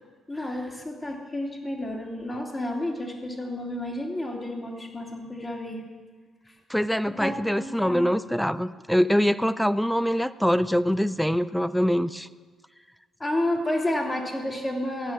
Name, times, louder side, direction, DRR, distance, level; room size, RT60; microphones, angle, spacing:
voice 1, 0.3-5.8 6.5-6.6 7.2-8.1 13.2-15.1, left 1 dB, 20° left, 0 dB, 2.8 m, -30 dB
voice 2, 6.7-12.3, equal, ahead, 15 dB, 0.4 m, -24 dB
15.0 x 9.4 x 7.3 m, 1.5 s
cardioid pair, 90°, 0 cm